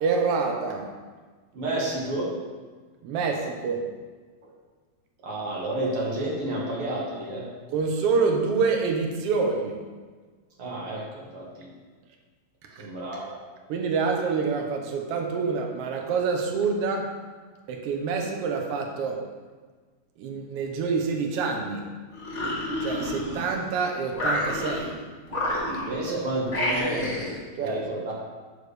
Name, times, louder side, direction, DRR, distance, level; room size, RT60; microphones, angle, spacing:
voice 1, 0.0-0.8 3.0-3.8 7.7-9.8 12.7-12.8 13.7-17.1 17.7-19.2 20.2-21.8 22.8-25.0 27.6-27.8, right 5 dB, 75° right, 2 dB, 1.4 m, -26 dB
voice 2, 1.5-2.3 4.4-4.5 5.2-7.5 10.6-11.7 12.8-13.4 25.9-27.3 27.6-28.1, right 1 dB, 55° right, -4 dB, 1.9 m, -30 dB
sound 1, 22.1-23.7 24.1-24.9 25.3-26.1 26.5-27.4, left 1 dB, 15° left, 1.2 m, -29 dB
9.4 x 3.4 x 6.6 m, 1.4 s
omnidirectional pair, 3.8 m